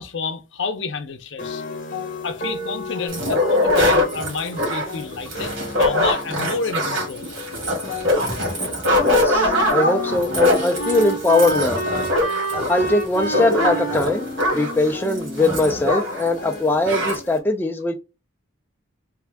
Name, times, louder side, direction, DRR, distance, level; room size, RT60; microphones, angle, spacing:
voice 1, 0.0-1.6 2.2-7.3, left 4 dB, 60° left, 0.6 m, -30 dB
sound 1, 1.4-17.4, left 2 dB, 40° left, 0.9 m, -34 dB
sound 2, 3.1-16.3 16.5-16.6 16.8-17.2, left 1 dB, 65° right, 1.8 m, -22 dB
Wind instrument woodwind instrument, 8.8-16.1, right 2 dB, 45° right, 1.2 m, -30 dB
voice 2, 9.0-11.8 12.5-17.9, left 2 dB, 10° left, 0.3 m, -21 dB
3.5 x 2.4 x 3.4 m
head